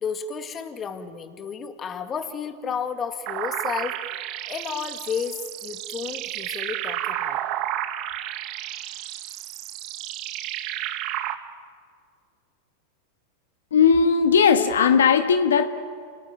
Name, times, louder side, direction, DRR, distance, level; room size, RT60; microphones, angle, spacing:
voice 1, 0.0-4.0 4.5-7.4, left 6 dB, 30° left, 8 dB, 2.1 m, -32 dB
sound 1, 3.3-11.3, right 13 dB, 50° right, 1.7 m, -32 dB
voice 2, 13.7-15.7, left 6 dB, 85° left, 8 dB, 1.5 m, -17 dB
28.5 x 19.0 x 9.2 m, 2.1 s
hypercardioid pair, 105°, 0 cm